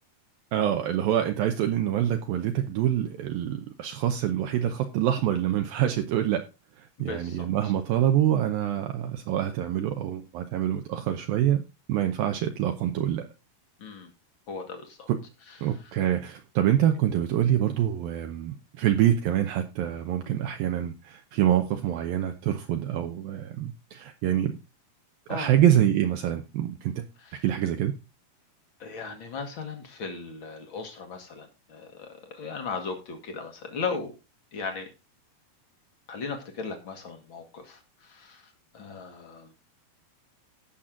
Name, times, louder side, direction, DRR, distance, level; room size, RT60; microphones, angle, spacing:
voice 1, 0.5-6.4 6.8-11.6 11.9-13.3 15.1-15.2 15.6-24.6 25.3-27.0 27.4-27.9, right 11 dB, 80° right, 6 dB, 2.2 m, -26 dB
voice 2, 7.0-7.7 13.8-14.1 14.5-15.1 15.5-15.6 25.3-25.5 27.2-27.4 28.8-34.1 34.5-34.9 36.1-39.5, left 4 dB, 65° left, 5 dB, 1.2 m, -37 dB
17.5 x 6.1 x 3.8 m, 0.27 s
omnidirectional pair, 4.8 m